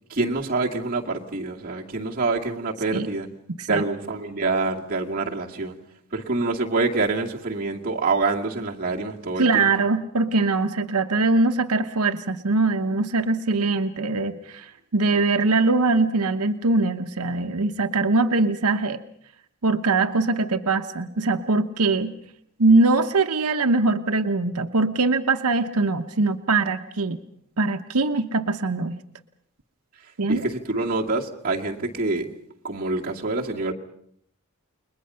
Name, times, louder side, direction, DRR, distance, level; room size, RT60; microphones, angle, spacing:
voice 1, 0.1-3.3 3.7-5.7 6.1-9.7 30.3-32.3 32.6-33.7, right 3 dB, 40° right, -1 dB, 2.3 m, -26 dB
voice 2, 9.4-19.0 19.6-22.1 22.6-27.2 27.6-29.0 30.2-30.5, right 3 dB, 85° right, 7 dB, 0.9 m, -22 dB
29.5 x 21.5 x 5.6 m, 0.66 s
head